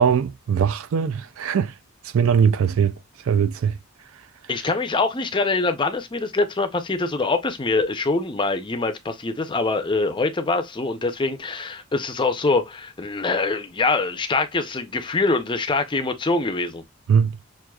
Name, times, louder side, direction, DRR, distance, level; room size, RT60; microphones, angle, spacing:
voice 1, 0.0-1.7 2.1-2.9 3.3-3.8 17.1-17.4, right 7 dB, 65° right, 0.3 m, -20 dB
voice 2, 4.5-16.8, left 3 dB, 20° left, 0.5 m, -24 dB
6.1 x 2.5 x 2.3 m
head